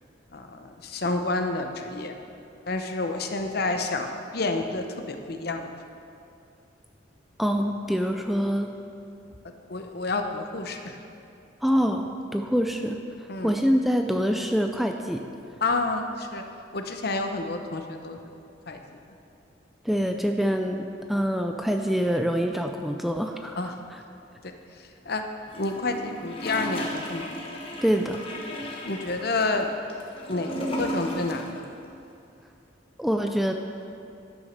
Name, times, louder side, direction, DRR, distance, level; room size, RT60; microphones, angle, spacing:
voice 1, 0.3-2.1 2.7-5.7 9.7-11.0 13.3-13.5 15.6-16.4 16.7-18.2 18.7-19.0 23.6-23.7 24.4-24.5 25.1-25.2 25.5-27.3 28.8-29.7 30.3-30.5 30.8-31.6, left 3 dB, 55° left, 5 dB, 0.8 m, -29 dB
voice 2, 7.4-8.7 11.6-13.0 13.4-15.2 19.8-24.0 27.8-28.2 33.0-33.5, equal, ahead, 4 dB, 0.4 m, -25 dB
Gurgling / Toilet flush, 25.5-31.6 31.8-31.9, equal, 30° left, 1.3 m, -35 dB
11.5 x 6.3 x 6.5 m, 2.6 s
head